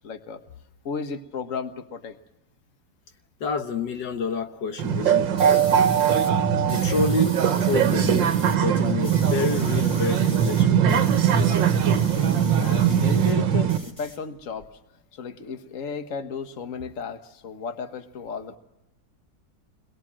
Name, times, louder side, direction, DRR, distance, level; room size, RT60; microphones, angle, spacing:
voice 1, 0.0-0.4 0.9-2.2 12.2-14.7 15.1-18.6, left 5 dB, 45° left, 8 dB, 1.7 m, -34 dB
voice 2, 3.4-5.6 6.7-10.9, left 4 dB, 75° left, 7 dB, 1.8 m, -29 dB
sound 1, 4.8-13.8, right 8 dB, 90° right, 1.9 m, -21 dB
sound 2, 5.4-6.3 6.7-8.6 8.8-13.4 13.7-14.7, left 1 dB, 25° left, 4.7 m, -41 dB
28.5 x 22.0 x 7.6 m, 0.91 s
omnidirectional pair, 1.9 m